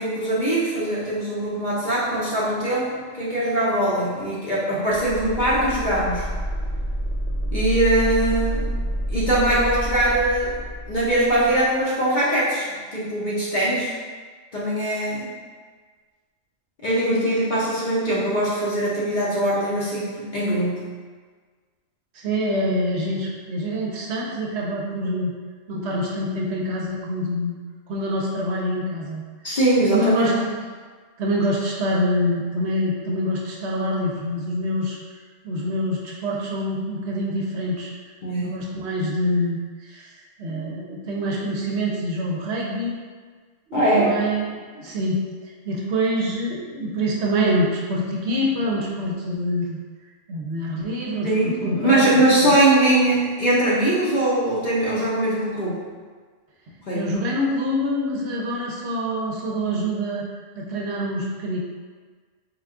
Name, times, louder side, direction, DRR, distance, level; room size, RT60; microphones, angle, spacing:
voice 1, 0.0-6.3 7.5-8.7 9.1-10.6 10.9-13.9 14.5-15.3 16.8-20.9 29.4-30.4 38.2-38.7 43.7-44.1 51.2-55.8 56.9-57.1, right 1 dB, 45° left, -7 dB, 0.7 m, -21 dB
sound 1, 4.9-11.6, equal, 80° left, 0.4 m, -28 dB
voice 2, 22.1-25.3 25.7-27.5 27.9-29.2 29.9-30.6 31.2-35.0 35.4-37.9 38.4-43.0 43.7-49.8 50.3-52.0 52.4-52.5 56.9-60.2 60.6-61.6, equal, 65° right, -3 dB, 0.8 m, -25 dB
3.6 x 2.3 x 3.5 m, 1.5 s
omnidirectional pair, 1.3 m